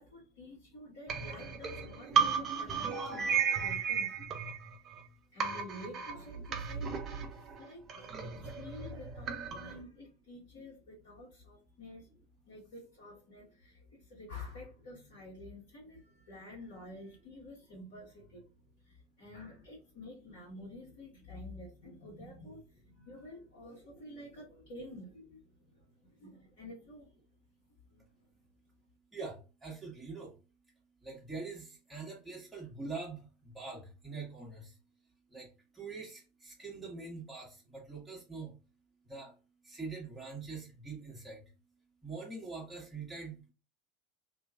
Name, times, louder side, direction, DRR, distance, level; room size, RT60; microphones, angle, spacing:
voice 1, 0.0-4.3 4.9-5.0 5.3-7.0 7.3-12.1 12.4-18.5 18.8-27.1 27.8-28.1, left 1 dB, 55° left, -7 dB, 1.4 m, -50 dB
sound 1, 1.1-5.0 5.4-9.8, right 6 dB, 35° right, 0.6 m, -34 dB
voice 2, 27.9-43.5, right 4 dB, 5° right, -4 dB, 1.2 m, -45 dB
2.9 x 2.6 x 2.3 m, 0.31 s
figure-of-eight pair, 75°, 0 cm